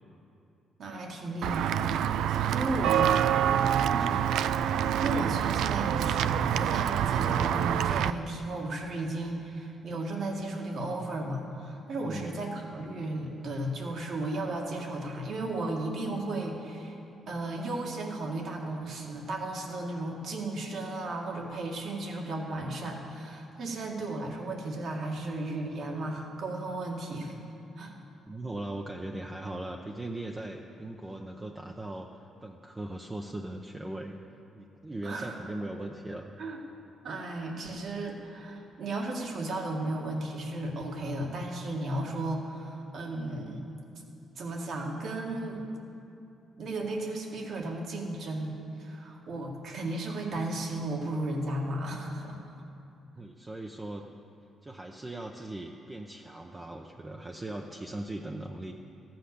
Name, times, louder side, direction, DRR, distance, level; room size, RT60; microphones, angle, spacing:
voice 1, 0.8-2.0 2.5-3.2 3.9-4.2 5.0-17.0 17.3-27.4 27.8-27.9 35.0-35.4 35.6-35.7 36.4-36.6 37.0-43.7 44.4-45.7 46.6-52.4, right 2 dB, 65° right, 0 dB, 1.9 m, -34 dB
Walk footsteps / Bell, 1.4-8.1, right 9 dB, 80° right, 0.3 m, -26 dB
voice 2, 2.8-4.3 12.0-12.3 28.3-34.2 34.5-36.3 53.2-54.1 54.6-58.7, right 1 dB, 20° right, 1 dB, 0.7 m, -39 dB
14.5 x 8.0 x 6.8 m, 2.7 s
cardioid pair, 90°, 0 cm